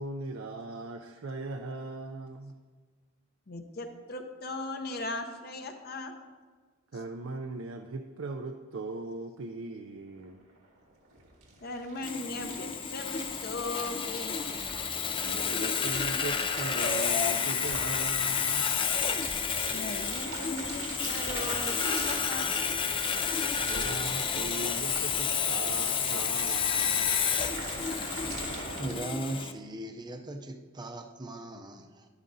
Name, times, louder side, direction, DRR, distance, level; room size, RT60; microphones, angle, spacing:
voice 1, 0.0-2.6 6.9-10.4 15.2-18.7 23.6-27.3, right 3 dB, 65° right, 5 dB, 0.5 m, -39 dB
voice 2, 3.5-6.1 11.6-14.4 19.7-22.6, left 2 dB, 50° left, 5 dB, 0.7 m, -38 dB
sound 1, 10.2-10.3 10.5-28.9, right 3 dB, 85° right, 1.9 m, -42 dB
Sawing, 12.0-29.5, left 7 dB, 25° left, 0.3 m, -30 dB
voice 3, 28.8-32.1, right 1 dB, 20° right, 5 dB, 0.6 m, -38 dB
11.0 x 11.0 x 2.7 m, 1.5 s
head